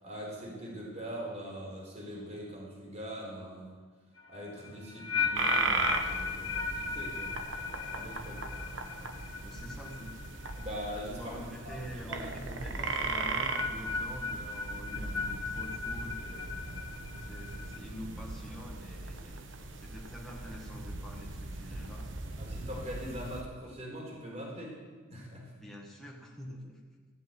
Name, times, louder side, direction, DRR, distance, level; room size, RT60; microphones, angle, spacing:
voice 1, 0.0-3.7 4.3-8.4 10.5-11.4 11.6-12.2 12.5-12.9 22.4-24.8 25.1-25.5, equal, 35° right, -3 dB, 4.4 m, -42 dB
sound 1, 4.2-11.3 11.5-12.0 13.2-17.8, left 5 dB, 80° left, 1.5 m, -37 dB
sound 2, 5.3-23.4, right 3 dB, 65° right, 1.2 m, -38 dB
voice 2, 8.5-10.4 11.2-16.5 17.2-19.4 19.8-22.1 25.5-27.1, equal, ahead, -3 dB, 1.6 m, -46 dB
15.0 x 7.7 x 9.2 m, 1.4 s
head